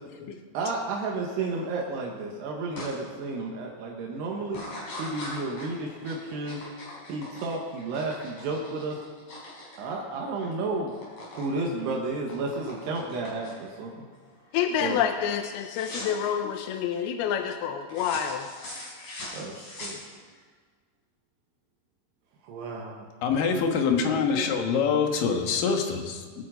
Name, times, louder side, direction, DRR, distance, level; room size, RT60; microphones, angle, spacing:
voice 1, 0.5-4.6 5.0-6.6 7.1-9.0 9.8-10.9 11.4-14.1 14.8-15.0 19.3-20.0 22.4-23.1, right 3 dB, 80° right, -1 dB, 3.4 m, -32 dB
sound 1, 2.8-2.9 3.4-3.8 4.5-10.5 10.8-11.5 11.8-13.8 14.2-14.5 14.8-15.0 15.7-16.3 17.9-20.4, left 1 dB, 40° left, 5.4 m, -41 dB
voice 2, 14.5-18.5, left 9 dB, 80° left, 6 dB, 2.5 m, -28 dB
voice 3, 23.2-26.4, left 5 dB, 65° left, 3 dB, 2.7 m, -25 dB
23.5 x 8.4 x 5.1 m, 1.5 s
omnidirectional pair, 4.9 m